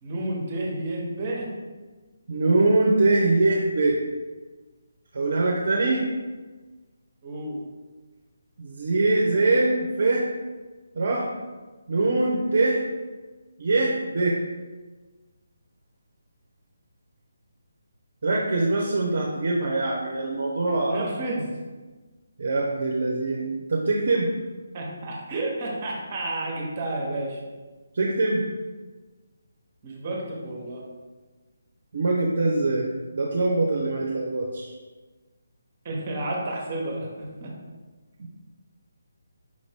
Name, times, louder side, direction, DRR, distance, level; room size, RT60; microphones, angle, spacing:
voice 1, 0.0-1.5 7.2-7.6 20.7-21.5 24.7-27.4 29.8-30.8 35.8-37.5, right 1 dB, 35° right, -2 dB, 0.9 m, -31 dB
voice 2, 2.3-4.0 5.1-6.0 8.6-10.3 10.9-11.3 11.9-12.8 13.6-14.4 18.2-21.1 22.4-24.3 27.9-28.5 31.9-34.7, right 2 dB, 55° right, -2 dB, 0.6 m, -23 dB
5.2 x 2.5 x 3.4 m, 1.3 s
figure-of-eight pair, 150°, 0 cm